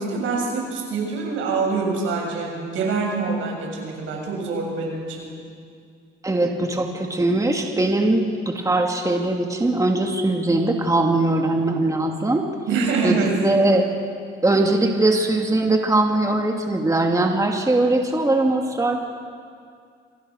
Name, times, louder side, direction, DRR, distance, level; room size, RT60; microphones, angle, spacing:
voice 1, 0.0-5.3 12.7-13.4, right 4 dB, 85° right, 0 dB, 7.4 m, -25 dB
voice 2, 6.2-12.5 13.0-13.9 14.4-19.0, right 2 dB, 15° right, 2 dB, 2.4 m, -21 dB
26.5 x 26.5 x 6.5 m, 2.2 s
cardioid pair, 90°, 20 cm